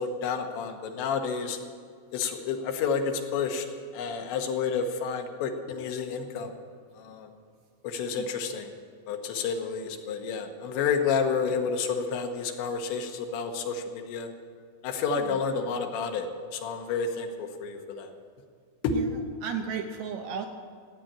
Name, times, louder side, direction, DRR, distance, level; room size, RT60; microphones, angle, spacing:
voice 1, 0.0-1.6 2.1-3.7 3.9-6.5 7.0-7.3 7.8-8.7 9.1-14.3 14.8-18.1 18.8-19.0, left 5 dB, 85° left, 4 dB, 3.4 m, -30 dB
voice 2, 18.9-20.5, right 7 dB, 75° right, 4 dB, 2.5 m, -34 dB
15.5 x 8.9 x 8.8 m, 2.1 s
omnidirectional pair, 5.2 m